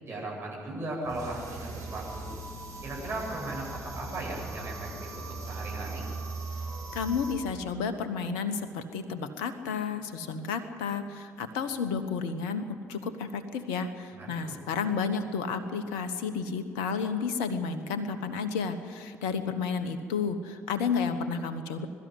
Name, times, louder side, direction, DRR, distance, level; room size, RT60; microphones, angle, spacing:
voice 1, 0.0-2.3 2.8-6.0 14.2-14.5, right 2 dB, 35° right, -3 dB, 7.7 m, -37 dB
sound 1, 1.0-7.3, right 3 dB, 55° right, 7.0 m, -39 dB
voice 2, 6.9-21.9, left 5 dB, 65° left, 11 dB, 1.2 m, -31 dB
22.0 x 13.0 x 9.7 m, 2.3 s
figure-of-eight pair, 50°, 7 cm